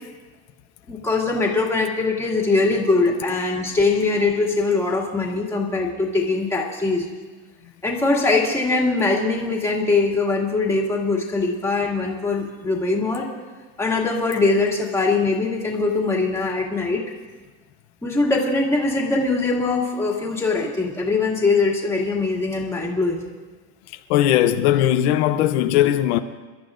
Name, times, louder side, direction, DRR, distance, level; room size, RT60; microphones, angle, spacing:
voice 1, 0.9-7.1 7.8-13.3 13.8-17.0 18.0-23.3, left 3 dB, 10° left, 2.3 m, -22 dB
voice 2, 24.1-26.2, left 12 dB, 80° left, 0.8 m, -18 dB
27.5 x 12.5 x 2.5 m
supercardioid pair, 150°, 33 cm